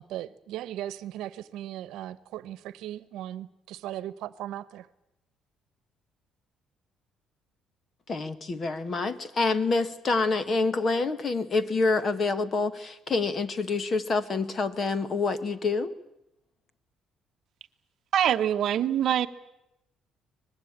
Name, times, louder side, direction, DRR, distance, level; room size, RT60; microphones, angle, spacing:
voice 1, 0.0-4.9, right 12 dB, 80° right, 1.0 m, -38 dB
voice 2, 8.1-15.9, left 3 dB, 30° left, 1.3 m, -27 dB
voice 3, 18.1-19.3, right 10 dB, 50° right, 1.0 m, -24 dB
24.0 x 20.5 x 8.6 m
cardioid pair, 170°, 0 cm